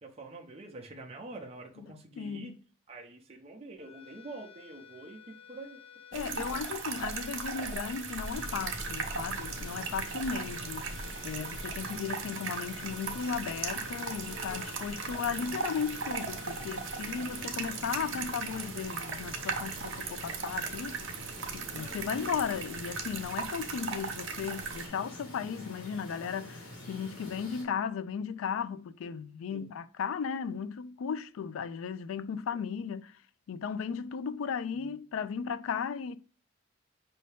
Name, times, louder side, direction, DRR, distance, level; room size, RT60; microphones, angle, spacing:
voice 1, 0.0-2.5 2.9-5.8 6.1-6.6 29.5-29.7 32.5-32.6 34.7-35.0, right 2 dB, 30° right, 0.6 m, -46 dB
voice 2, 2.2-2.6 6.1-10.9 11.2-21.0 21.5-33.1 33.5-36.2, left 6 dB, 85° left, 0.3 m, -36 dB
sound 1, 3.8-18.3, left 8 dB, 30° left, 0.6 m, -52 dB
sound 2, 6.1-24.9, right 5 dB, 70° right, 0.8 m, -38 dB
sound 3, 8.3-27.6, left 1 dB, 70° left, 1.9 m, -47 dB
5.4 x 2.7 x 3.3 m
head